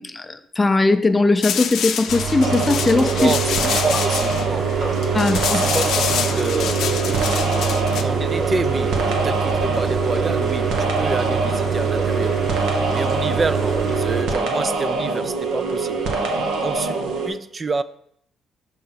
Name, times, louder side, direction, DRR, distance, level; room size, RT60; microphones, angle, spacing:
voice 1, 0.0-3.3 5.1-5.6, left 3 dB, 20° left, 0.5 m, -19 dB
sound 1, 1.4-8.0, left 8 dB, 75° left, 0.5 m, -27 dB
sound 2, 2.1-14.2, right 6 dB, 55° right, 1.4 m, -25 dB
sound 3, 2.4-17.3, right 3 dB, 90° right, 1.0 m, -24 dB
voice 2, 3.2-4.8 5.5-16.1 16.6-17.0 17.2-17.8, right 4 dB, 35° right, 0.4 m, -28 dB
5.7 x 3.8 x 5.6 m
cardioid pair, 90°, 0 cm